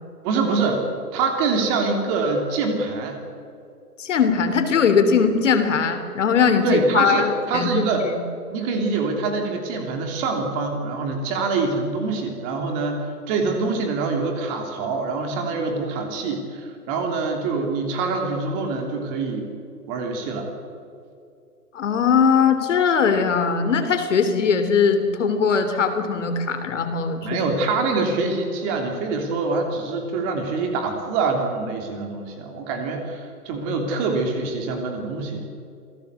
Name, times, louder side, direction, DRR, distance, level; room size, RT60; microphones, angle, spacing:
voice 1, 0.2-0.8 1.1-3.2 6.6-8.0 8.5-19.5 19.9-20.5 27.2-35.4, right 4 dB, 20° right, 3 dB, 3.1 m, -25 dB
voice 2, 4.0-7.7 8.0-8.2 21.7-27.4, left 6 dB, 50° left, 7 dB, 3.3 m, -20 dB
27.0 x 17.5 x 8.2 m, 2.5 s
hypercardioid pair, 150°, 47 cm